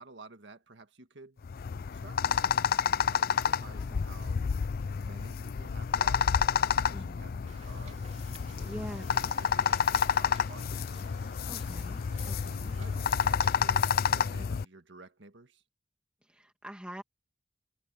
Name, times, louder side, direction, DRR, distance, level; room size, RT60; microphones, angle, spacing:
voice 1, 0.0-1.5 1.9-2.5 3.0-4.5 4.9-6.4 6.7-10.7 12.4-15.6, right 3 dB, 85° right, 1.8 m, -52 dB
sound 1, 1.4-14.6, left 7 dB, 55° left, 0.4 m, -29 dB
voice 2, 3.8-4.1 6.9-7.2 8.6-9.0 11.5-12.7 14.4-14.5 16.2-17.0, equal, 5° right, 1.7 m, -44 dB
Wind / Boat Water vehicle, 7.5-13.5, right 3 dB, 40° right, 3.0 m, -54 dB
head